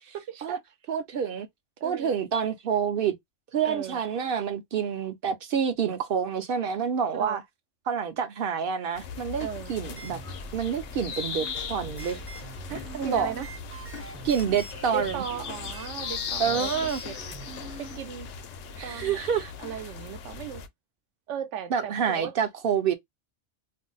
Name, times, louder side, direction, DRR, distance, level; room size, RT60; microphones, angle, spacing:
voice 1, 0.1-0.6 1.8-2.1 3.6-4.0 7.1-7.4 9.4-9.7 12.7-13.5 14.9-16.7 17.0-17.2 17.8-18.3 18.8-19.2 19.6-20.6 21.3-22.3, right 8 dB, 85° right, 0.9 m, -36 dB
voice 2, 0.9-1.5 1.8-3.1 3.5-7.4 7.9-10.2 10.5-12.2 12.9-13.3 14.2-15.2 16.4-17.0 18.8-19.5 21.7-22.9, right 7 dB, 60° right, 0.6 m, -27 dB
sound 1, 8.9-20.7, left 6 dB, 75° left, 0.9 m, -38 dB
sound 2, 9.8-18.0, right 2 dB, 20° right, 0.4 m, -44 dB
2.5 x 2.0 x 3.7 m
omnidirectional pair, 1.2 m